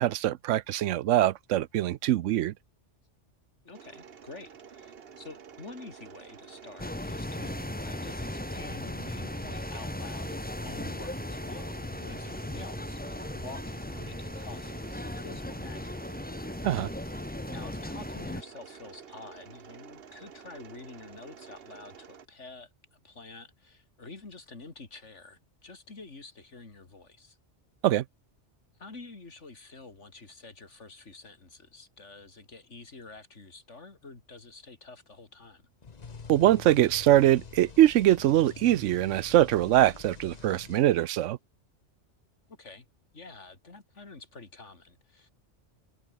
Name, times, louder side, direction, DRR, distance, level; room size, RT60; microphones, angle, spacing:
voice 1, 0.0-2.5 16.6-16.9 27.8-28.0 36.3-41.4, right 13 dB, 85° right, 0.9 m, -23 dB
voice 2, 3.6-16.1 17.4-27.4 28.8-35.6 42.5-42.9 43.1-45.3, left 3 dB, 75° left, 3.3 m, -48 dB
Mechanisms, 3.7-22.3, right 7 dB, 55° right, 1.2 m, -50 dB
sound 1, 6.8-18.4, left 1 dB, 10° left, 1.0 m, -37 dB
sound 2, 35.8-41.3, left 5 dB, 35° left, 1.1 m, -46 dB
omnidirectional pair, 1.2 m